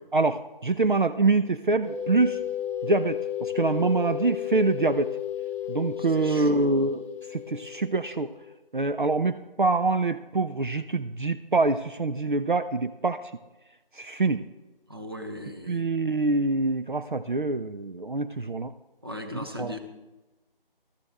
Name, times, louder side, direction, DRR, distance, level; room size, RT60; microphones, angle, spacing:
voice 1, 0.1-2.4 2.8-5.2 5.7-7.0 7.3-8.3 8.7-13.3 13.9-14.4 15.7-18.7 19.3-19.8, right 3 dB, 60° right, 10 dB, 0.5 m, -25 dB
sound 1, 1.8-8.4, left 11 dB, 15° left, 2.0 m, -33 dB
voice 2, 6.0-6.9 14.9-15.8 19.0-19.8, equal, 25° right, 5 dB, 0.8 m, -38 dB
13.5 x 13.0 x 3.5 m, 1.1 s
figure-of-eight pair, 165°, 29 cm